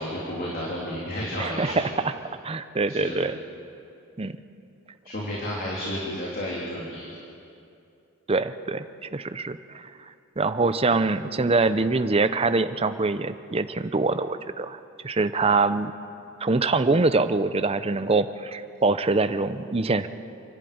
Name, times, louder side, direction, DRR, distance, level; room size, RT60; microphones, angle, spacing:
voice 1, 0.0-1.9 2.9-3.1 5.0-7.2, left 1 dB, 45° left, -5 dB, 3.2 m, -32 dB
voice 2, 1.4-1.7 2.0-2.1 2.4-3.4 4.2-4.4 8.3-9.9 10.4-15.9 16.4-20.1, right 3 dB, 25° right, 11 dB, 0.6 m, -24 dB
28.5 x 11.5 x 8.7 m, 2.6 s
head